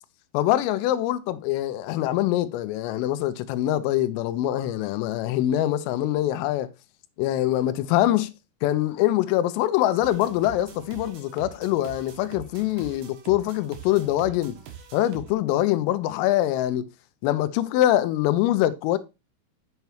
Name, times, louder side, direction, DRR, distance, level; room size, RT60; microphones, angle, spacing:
voice 1, 0.3-6.7 7.2-8.3 8.6-14.6 14.9-16.9 17.2-19.0, left 13 dB, 85° left, 3.3 m, -24 dB
sound 1, 10.0-15.3, right 8 dB, 85° right, 4.1 m, -44 dB
8.1 x 6.9 x 3.2 m
omnidirectional pair, 5.8 m